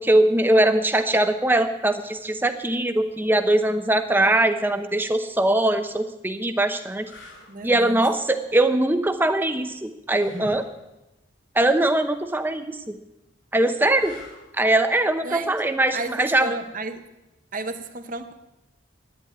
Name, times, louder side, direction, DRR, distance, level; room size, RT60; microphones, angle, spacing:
voice 1, 0.0-7.1 7.6-10.6 11.5-13.0 13.5-14.1 14.5-16.5, right 1 dB, 10° right, 8 dB, 0.8 m, -21 dB
sound 1, 5.4-5.6 6.3-6.4 7.0-7.5 10.1-10.7 13.9-14.6 17.5-17.7, equal, 70° left, 4.3 m, -42 dB
voice 2, 7.5-8.0 15.2-15.6 15.9-17.1 17.5-18.3, right 3 dB, 40° right, 8 dB, 1.0 m, -32 dB
11.0 x 10.0 x 9.4 m, 0.97 s
head